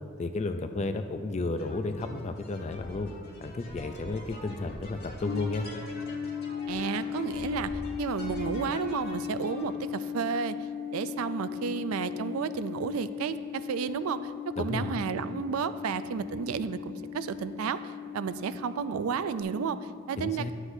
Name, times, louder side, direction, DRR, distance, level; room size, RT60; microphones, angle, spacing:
voice 1, 0.2-3.1 3.4-5.7 14.6-14.9 20.2-20.5, left 3 dB, 30° left, 8 dB, 0.4 m, -32 dB
sound 1, 1.6-9.8, left 1 dB, 50° left, 1.5 m, -44 dB
sound 2, 5.3-19.4, left 8 dB, 85° left, 1.5 m, -37 dB
voice 2, 6.7-7.7 8.0-10.6 10.9-20.5, right 6 dB, 80° right, 13 dB, 0.3 m, -32 dB
11.5 x 8.0 x 2.7 m, 2.2 s
head